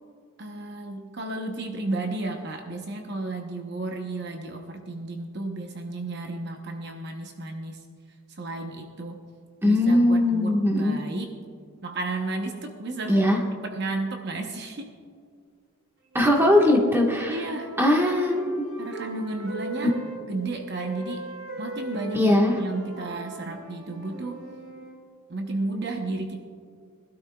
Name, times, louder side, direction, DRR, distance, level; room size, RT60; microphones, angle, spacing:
voice 1, 0.4-7.8 8.3-9.2 9.6-11.3 11.8-13.3 13.6-14.9 17.3-17.7 18.8-19.9 20.3-21.3 21.6-24.4 25.3-26.4, right 2 dB, 50° right, 3 dB, 0.8 m, -33 dB
voice 2, 9.6-11.0 13.1-13.4 16.1-17.5 17.8-18.4 22.1-22.5, left 1 dB, 10° right, -1 dB, 1.4 m, -20 dB
sound 1, 16.1-20.2 20.7-25.0, right 1 dB, 75° right, 3.4 m, -39 dB
22.0 x 12.5 x 2.3 m, 2.1 s
head